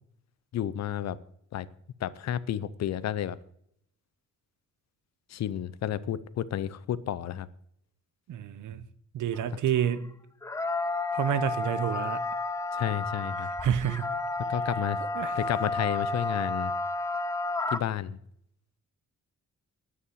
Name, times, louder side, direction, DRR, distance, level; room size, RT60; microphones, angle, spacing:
voice 1, 0.5-1.2 1.5-1.7 2.0-3.4 5.3-7.5 12.7-13.5 14.5-15.0 15.4-16.7 17.7-18.2, left 10 dB, 60° left, 0.6 m, -31 dB
voice 2, 8.3-8.8 9.1-10.1 11.1-12.2 13.4-14.1 15.1-15.4, right 9 dB, 75° right, 0.9 m, -29 dB
sound 1, 9.3-9.4 10.4-17.8, left 2 dB, 10° left, 0.4 m, -31 dB
9.7 x 8.5 x 7.9 m
wide cardioid pair, 165°, 31 cm